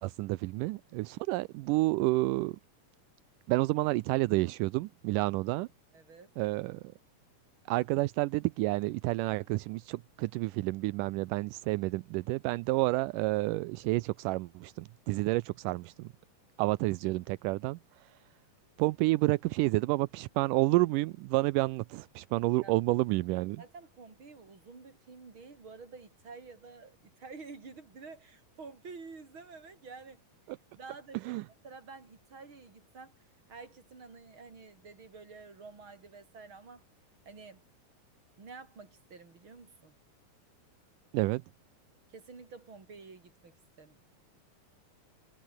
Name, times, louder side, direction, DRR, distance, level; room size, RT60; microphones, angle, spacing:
voice 1, 0.0-2.6 3.5-5.7 6.4-6.8 7.7-16.1 16.6-18.1 18.8-23.6 30.5-30.6 31.3-31.4 41.1-41.4, right 21 dB, 80° right, 2.0 m, -30 dB
voice 2, 5.9-6.3 22.6-22.7 23.6-30.2 30.7-31.4 31.6-36.8 37.2-37.6 38.4-40.0 42.1-44.0, right 4 dB, 35° right, 4.9 m, -50 dB
omnidirectional pair, 4.2 m